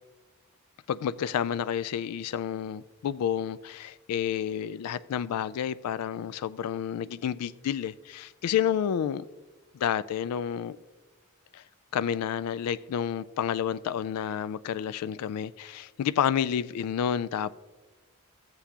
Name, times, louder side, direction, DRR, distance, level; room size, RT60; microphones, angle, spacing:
voice 1, 0.9-9.3 9.7-10.8 11.5-11.6 11.9-17.5, left 9 dB, 90° left, 0.3 m, -30 dB
14.5 x 7.9 x 2.8 m
head